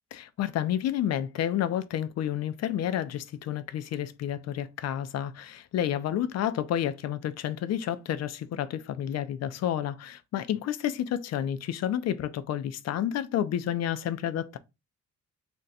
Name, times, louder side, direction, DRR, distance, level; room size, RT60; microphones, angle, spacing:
voice 1, 0.1-14.6, left 10 dB, 60° left, 0.5 m, -30 dB
2.6 x 2.2 x 4.0 m
cardioid pair, 90°, 30 cm